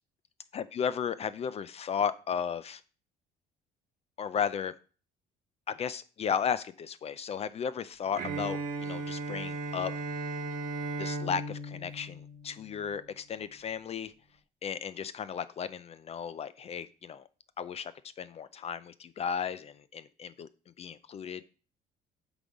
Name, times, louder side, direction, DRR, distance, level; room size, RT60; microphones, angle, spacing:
voice 1, 0.5-2.8 4.2-4.7 5.7-9.9 11.0-14.1 14.6-17.3 17.6-17.9 18.2-20.5 20.8-21.4, left 7 dB, 40° left, 15 dB, 0.4 m, -34 dB
Bowed string instrument, 8.2-13.0, right 2 dB, 55° right, 1.1 m, -36 dB
8.0 x 3.9 x 4.9 m, 0.37 s
cardioid pair, 110°, 17 cm